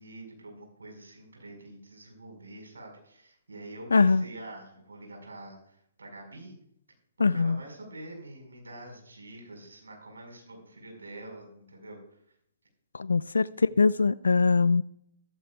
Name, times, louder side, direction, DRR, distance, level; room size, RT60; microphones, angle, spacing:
voice 1, 0.0-6.5 7.2-12.3 13.7-13.8, right 1 dB, 85° right, 2 dB, 4.9 m, -46 dB
voice 2, 3.9-4.2 7.2-7.6 12.9-14.8, left 4 dB, 85° left, 18 dB, 0.3 m, -22 dB
14.0 x 14.0 x 2.3 m, 0.69 s
hypercardioid pair, 130°, 0 cm